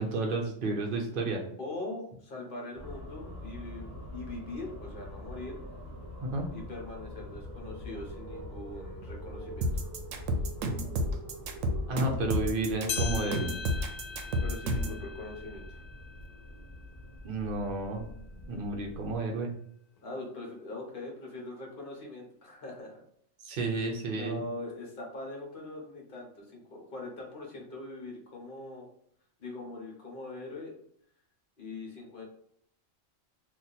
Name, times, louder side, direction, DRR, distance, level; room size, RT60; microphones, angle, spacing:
voice 1, 0.0-1.4 6.2-6.5 11.9-13.5 17.2-18.1 18.5-19.5 23.4-24.4, right 2 dB, 55° right, 1 dB, 0.6 m, -31 dB
voice 2, 1.6-5.6 6.5-9.9 13.8-13.9 14.4-15.8 20.0-23.0 24.1-28.9 29.4-30.7 31.6-32.2, left 2 dB, 45° left, -1 dB, 1.0 m, -42 dB
sound 1, 2.7-19.2, left 1 dB, 15° right, 1.0 m, -44 dB
sound 2, 9.6-15.0, equal, 75° right, 0.9 m, -30 dB
sound 3, 12.9-17.5 18.0-18.1 18.9-19.0 20.0-20.1, left 6 dB, 75° left, 0.9 m, -41 dB
2.8 x 2.4 x 3.8 m, 0.68 s
omnidirectional pair, 1.4 m